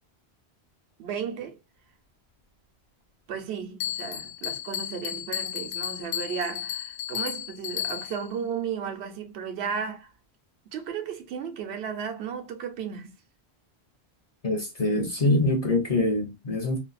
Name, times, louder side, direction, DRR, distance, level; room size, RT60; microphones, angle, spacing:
voice 1, 1.0-1.6 3.3-10.1 10.7-13.1, right 7 dB, 75° right, 0.9 m, -34 dB
Bell, 3.8-8.3, left 11 dB, 75° left, 0.9 m, -33 dB
voice 2, 14.4-16.8, left 2 dB, 40° left, 0.6 m, -24 dB
2.7 x 2.2 x 2.3 m
omnidirectional pair, 1.1 m